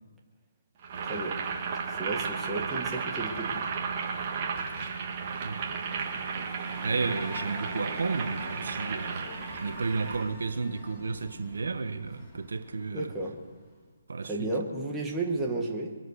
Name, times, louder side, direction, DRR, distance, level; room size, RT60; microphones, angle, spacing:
Boiling, 0.8-10.2, right 5 dB, 30° right, 1.9 m, -34 dB
voice 1, 2.0-3.7 12.9-13.4 14.3-15.9, right 2 dB, 5° right, 1.5 m, -33 dB
sound 1, 5.2-13.8, left 2 dB, 15° left, 2.6 m, -46 dB
voice 2, 6.8-13.1 14.1-14.5, right 4 dB, 80° right, 1.1 m, -32 dB
23.5 x 7.9 x 6.5 m
hypercardioid pair, 170°, 0 cm